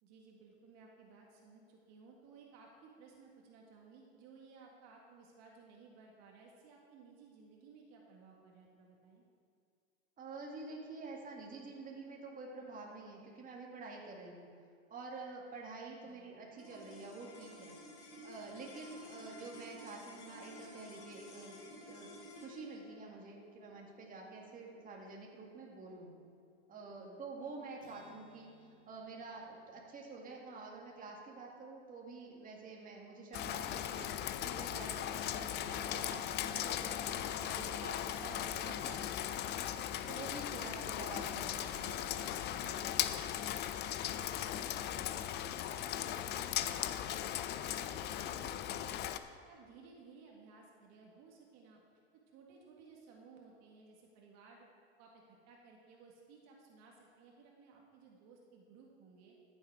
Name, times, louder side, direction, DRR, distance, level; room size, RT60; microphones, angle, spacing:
voice 1, 0.0-9.2 16.0-16.3 26.9-27.2 44.0-49.1 49.5-51.8 52.1-54.7 55.0-59.4, right 4 dB, 50° right, -1 dB, 1.8 m, -59 dB
voice 2, 10.2-14.5 14.9-17.7 18.2-21.6 21.9-22.1 22.4-26.1 26.7-28.5 28.9-39.5 40.1-42.9, right 3 dB, 25° right, -1 dB, 2.0 m, -48 dB
sound 1, 16.6-27.0, left 1 dB, 75° left, 3.2 m, -54 dB
Acoustic guitar, 27.8-31.5, left 4 dB, 55° left, 2.3 m, -65 dB
Rain, 33.3-49.2, left 11 dB, 30° left, 0.5 m, -38 dB
14.0 x 7.3 x 4.8 m, 2.2 s
hypercardioid pair, 110°, 34 cm